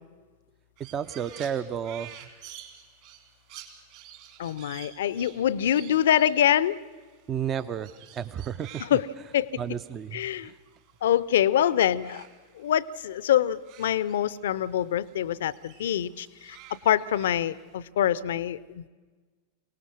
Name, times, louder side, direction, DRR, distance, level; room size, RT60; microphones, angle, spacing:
voice 1, 0.8-2.1 7.3-8.9 9.6-10.6, right 8 dB, 25° right, 14 dB, 0.5 m, -32 dB
Crow, 0.8-11.5 11.7-14.7 15.0-17.7, right 11 dB, 50° right, 2.8 m, -50 dB
voice 2, 4.4-6.8 8.8-9.1 9.3-9.5 10.1-10.5 11.0-12.3 12.6-16.6 16.8-18.9, left 10 dB, 60° left, 20 dB, 0.6 m, -25 dB
24.0 x 18.0 x 6.3 m, 1.4 s
figure-of-eight pair, 90°, 0 cm